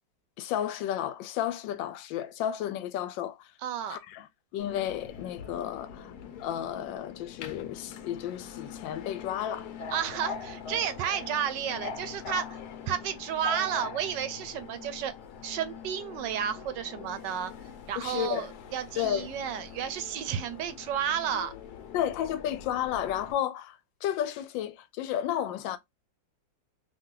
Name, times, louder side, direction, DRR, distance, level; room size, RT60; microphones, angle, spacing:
voice 1, 0.4-3.5 3.9-4.3 4.5-6.1 6.4-9.7 18.0-18.5 19.0-19.3 21.9-25.8, left 11 dB, 85° left, 1.3 m, -32 dB
voice 2, 3.6-4.0 9.9-12.6 12.9-15.1 15.4-17.5 17.9-21.5, right 9 dB, 75° right, 1.2 m, -32 dB
Subway metro underground, 4.6-23.3, left 6 dB, 65° left, 1.1 m, -43 dB
3.1 x 2.7 x 3.7 m
omnidirectional pair, 2.0 m